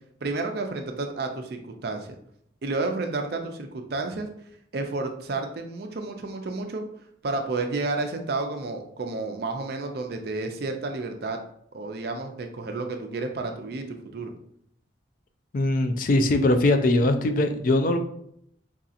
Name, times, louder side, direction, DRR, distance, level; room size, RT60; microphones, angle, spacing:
voice 1, 0.2-2.1 2.6-4.3 4.7-6.8 7.2-11.4 11.7-14.3, right 3 dB, 55° right, 4 dB, 0.4 m, -31 dB
voice 2, 15.5-18.0, left 2 dB, 45° left, 7 dB, 0.3 m, -21 dB
4.7 x 2.7 x 2.4 m, 0.70 s
head